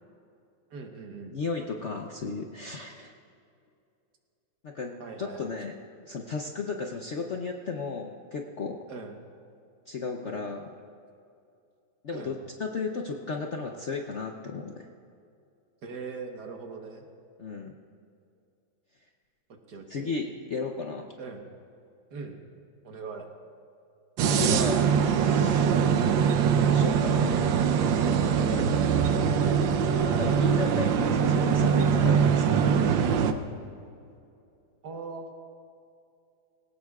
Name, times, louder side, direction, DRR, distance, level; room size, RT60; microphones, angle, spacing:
voice 1, 0.7-1.4 5.0-5.5 8.9-9.1 12.1-12.4 15.8-17.0 19.7-20.1 21.2-21.4 22.1-22.4 22.8-23.3 25.7-26.0 28.2-28.8 34.8-35.5, right 4 dB, 60° right, 3 dB, 1.7 m, -40 dB
voice 2, 1.3-3.1 4.6-4.9 5.2-5.7 6.0-8.9 9.9-10.6 12.0-14.9 17.4-17.7 19.9-21.1 24.2-25.7 26.5-27.4 28.4-28.6 29.9-32.6, left 4 dB, 55° left, 2 dB, 0.8 m, -34 dB
sound 1, 24.2-33.3, right 7 dB, 75° right, 1.4 m, -23 dB
20.0 x 17.5 x 2.4 m, 2.6 s
omnidirectional pair, 2.1 m